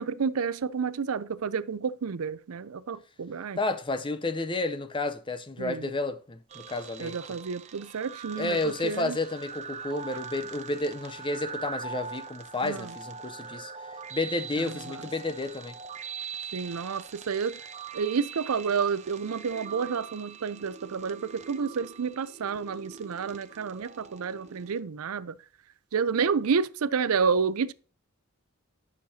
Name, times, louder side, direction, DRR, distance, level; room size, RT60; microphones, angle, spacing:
voice 1, 0.0-3.6 5.6-5.9 7.0-9.2 12.6-12.9 14.6-15.0 16.5-17.6 17.9-25.4 25.9-27.7, right 6 dB, 75° right, 0.5 m, -30 dB
voice 2, 3.6-7.2 8.4-15.8, left 2 dB, 20° left, 0.6 m, -31 dB
sound 1, 6.5-24.8, right 6 dB, 30° right, 0.7 m, -42 dB
10.5 x 6.6 x 2.8 m
head